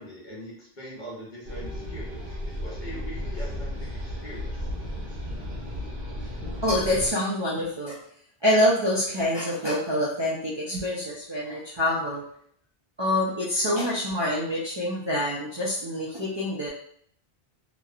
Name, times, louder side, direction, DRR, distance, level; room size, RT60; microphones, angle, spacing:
voice 1, 0.0-4.5, equal, 50° left, -6 dB, 1.1 m, -42 dB
sound 1, 1.5-7.1, left 1 dB, 70° right, 0.9 m, -34 dB
voice 2, 6.6-8.0 8.4-12.2 13.0-16.7, left 1 dB, 40° right, -9 dB, 0.4 m, -26 dB
2.8 x 2.1 x 2.4 m, 0.62 s
omnidirectional pair, 1.0 m